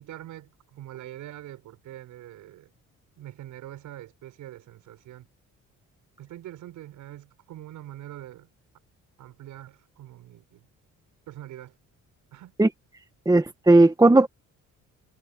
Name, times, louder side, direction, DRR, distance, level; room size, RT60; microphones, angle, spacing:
voice 1, 0.0-2.7 3.2-5.3 6.2-8.5 9.2-10.6 11.3-11.8 12.3-12.5 13.3-13.4, right 13 dB, 85° right, 6.2 m, -43 dB
voice 2, 13.2-14.3, right 2 dB, 10° right, 1.6 m, -16 dB
cardioid pair, 90°, 30 cm